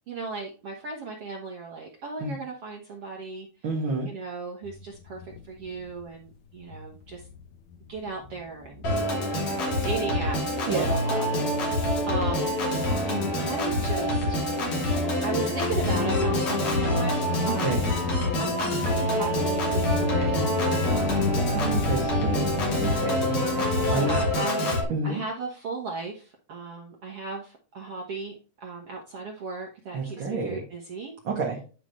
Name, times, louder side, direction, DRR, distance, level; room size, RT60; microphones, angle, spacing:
voice 1, 0.1-3.5 4.1-7.2 7.9-12.5 13.1-14.4 15.2-17.7 18.4-20.9 21.1-21.7 23.9-24.8 25.0-31.2, right 4 dB, 65° right, 0 dB, 1.4 m, -36 dB
voice 2, 3.6-4.1 10.7-11.0 17.6-17.8 21.5-23.4 23.9-24.2 24.9-25.2 29.9-30.6 31.2-31.6, right 3 dB, 40° right, -2 dB, 2.1 m, -29 dB
sound 1, 4.6-6.3 6.5-24.3, left 5 dB, 75° left, 2.5 m, -36 dB
Organ, 8.8-24.8, left 1 dB, 45° left, 3.7 m, -26 dB
11.0 x 5.0 x 3.1 m, 0.35 s
omnidirectional pair, 4.5 m